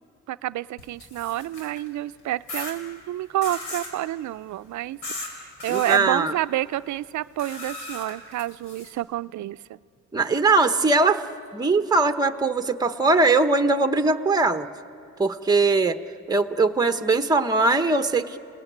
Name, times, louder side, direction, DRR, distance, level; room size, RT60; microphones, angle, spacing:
voice 1, 0.3-9.8, right 14 dB, 70° right, 14 dB, 0.6 m, -29 dB
sound 1, 0.8-1.9 2.5-2.7 3.4-3.9 5.0-5.3 5.6-6.0 7.4-8.9, left 2 dB, 90° left, 5.0 m, -36 dB
voice 2, 5.7-6.3 10.1-11.3 11.5-14.7 15.2-16.0 16.3-18.4, right 3 dB, 15° right, 8 dB, 1.0 m, -21 dB
29.5 x 19.0 x 9.3 m, 2.5 s
cardioid pair, 90°, 30 cm